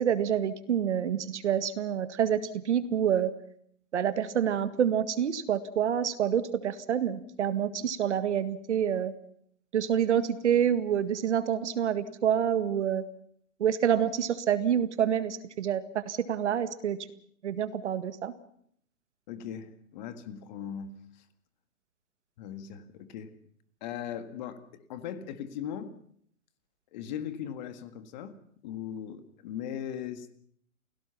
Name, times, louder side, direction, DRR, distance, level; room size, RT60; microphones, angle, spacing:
voice 1, 0.0-3.3 3.9-9.1 9.7-13.0 13.6-17.0 17.4-18.3, right 9 dB, 55° right, 13 dB, 1.8 m, -27 dB
voice 2, 19.3-20.9 22.4-23.3 23.8-25.9 26.9-28.4 28.6-30.3, left 9 dB, 30° left, 11 dB, 1.8 m, -39 dB
29.0 x 17.5 x 5.8 m, 0.66 s
hypercardioid pair, 145°, 42 cm